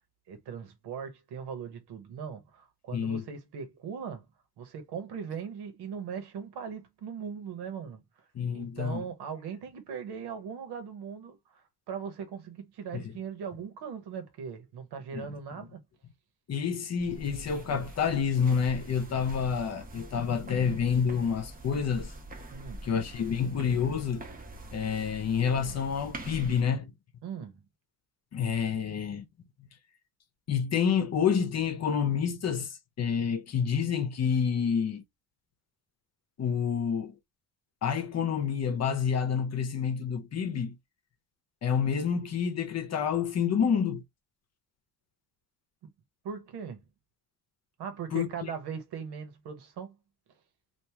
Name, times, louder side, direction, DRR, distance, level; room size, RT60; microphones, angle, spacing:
voice 1, 0.3-4.3 4.6-8.0 8.5-15.8 22.5-22.8 27.2-27.6 45.8-45.9 46.2-46.8 47.8-49.9, right 7 dB, 90° right, 1.2 m, -39 dB
voice 2, 2.9-3.2 8.3-9.0 12.9-13.0 15.1-15.3 16.5-22.1 22.8-24.2 24.7-26.9 28.3-29.2 30.5-35.0 36.4-37.1 37.8-40.8 41.6-44.0 48.1-48.3, left 7 dB, 45° left, 0.8 m, -28 dB
sound 1, 17.0-26.6, right 1 dB, 25° right, 0.8 m, -44 dB
2.9 x 2.5 x 3.5 m
cardioid pair, 145°, 38 cm